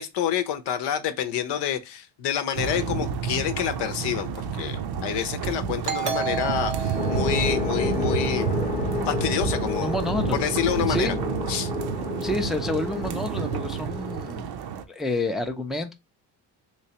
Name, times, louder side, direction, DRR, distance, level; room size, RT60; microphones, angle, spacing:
voice 1, 0.0-8.7 9.0-9.9 10.3-11.1 11.5-11.7, left 9 dB, 75° left, 0.8 m, -28 dB
sound 1, 2.6-14.8, right 6 dB, 65° right, 0.7 m, -30 dB
Doorbell, 5.8-9.2, right 7 dB, 85° right, 1.0 m, -33 dB
sound 2, 7.0-14.3, left 4 dB, 20° left, 0.8 m, -31 dB
voice 2, 9.8-10.4 10.9-11.2 12.2-14.5 14.9-15.9, left 2 dB, ahead, 0.5 m, -29 dB
3.2 x 3.2 x 2.8 m
cardioid pair, 100°, 42 cm